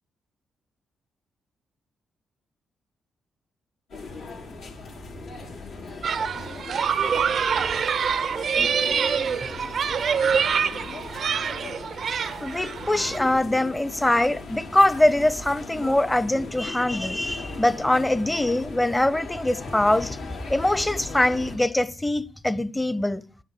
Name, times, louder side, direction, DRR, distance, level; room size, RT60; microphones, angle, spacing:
sound 1, 3.9-21.6, left 3 dB, 80° left, 6.0 m, -38 dB
sound 2, 6.0-13.2, right 7 dB, 60° right, 0.7 m, -25 dB
voice 1, 12.4-20.2 20.5-23.2, left 1 dB, 15° left, 1.0 m, -23 dB
10.5 x 9.8 x 6.8 m
hypercardioid pair, 45°, 0 cm